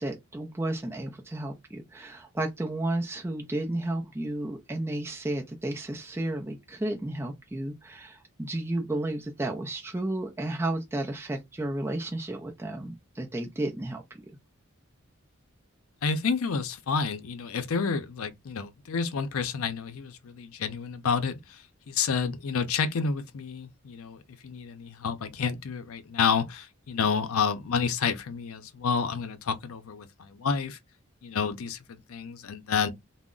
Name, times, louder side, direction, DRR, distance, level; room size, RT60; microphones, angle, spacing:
voice 1, 0.0-14.2, right 1 dB, 10° right, 0.4 m, -32 dB
voice 2, 16.0-30.8 31.2-32.9, left 5 dB, 85° left, 0.5 m, -29 dB
2.3 x 2.0 x 3.7 m
head